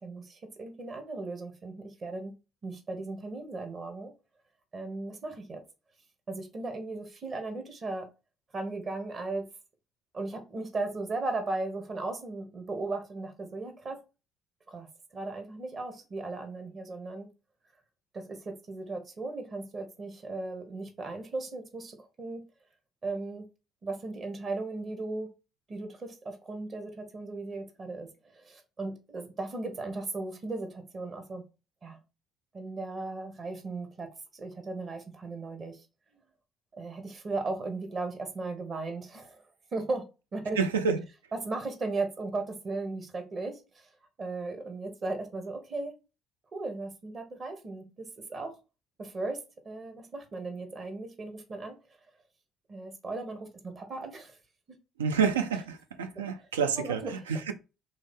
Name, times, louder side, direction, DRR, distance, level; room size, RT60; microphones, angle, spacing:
voice 1, 0.0-2.3 2.6-4.1 4.7-5.6 6.3-8.1 8.5-9.4 10.1-14.0 14.7-17.3 18.1-22.4 23.0-23.4 23.8-25.3 25.7-31.4 31.8-32.0 32.5-34.1 34.3-35.8 36.7-39.5 39.7-40.0 40.3-40.6 41.3-43.9 44.2-45.9 46.5-48.5 49.0-49.4 49.6-51.7 52.7-54.4 56.1-56.3 56.8-57.2, right 3 dB, 40° right, 1.0 m, -36 dB
voice 2, 40.6-41.0 55.0-57.5, right 6 dB, 80° right, 0.3 m, -28 dB
3.2 x 2.6 x 3.6 m
figure-of-eight pair, 50°, 0 cm